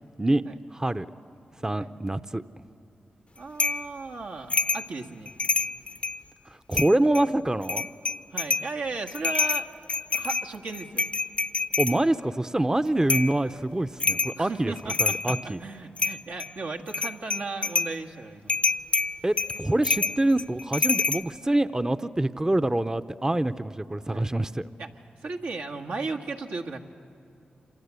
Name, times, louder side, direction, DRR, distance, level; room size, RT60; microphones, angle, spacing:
voice 1, 0.7-1.1 1.6-2.4 6.7-7.9 11.8-14.7 15.0-15.6 19.2-24.7, right 1 dB, 20° right, 12 dB, 0.7 m, -25 dB
voice 2, 3.4-5.3 8.3-9.7 10.1-11.1 14.4-18.6 24.1-24.3 24.8-24.9 25.2-26.8, right 3 dB, 80° right, 1 dB, 1.6 m, -36 dB
sound 1, 3.6-3.9 4.5-4.9 5.3-6.2 6.7-7.2 7.6-8.7 9.1-12.0 13.1-13.4 14.0-14.4 14.8-15.5 16.0-16.5 16.9-18.0 18.5-21.2, left 4 dB, 40° left, 0.6 m, -27 dB
27.0 x 26.5 x 8.3 m, 2.7 s
cardioid pair, 45°, 3 cm